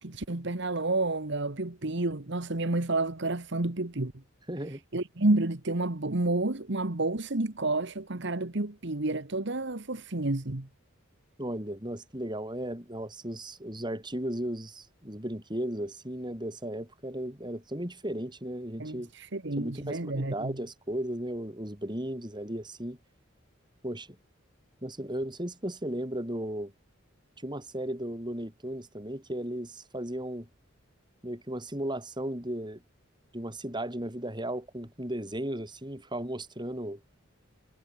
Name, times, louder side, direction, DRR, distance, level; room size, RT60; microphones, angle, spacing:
voice 1, 0.0-4.1 4.9-10.7 18.8-20.6, right 2 dB, 60° right, 1.5 m, -30 dB
voice 2, 4.5-4.8 11.4-19.1 19.6-23.0 23.8-24.2 24.8-26.7 27.4-30.5 31.2-32.8 33.3-37.0, right 1 dB, 20° right, 6.2 m, -35 dB
head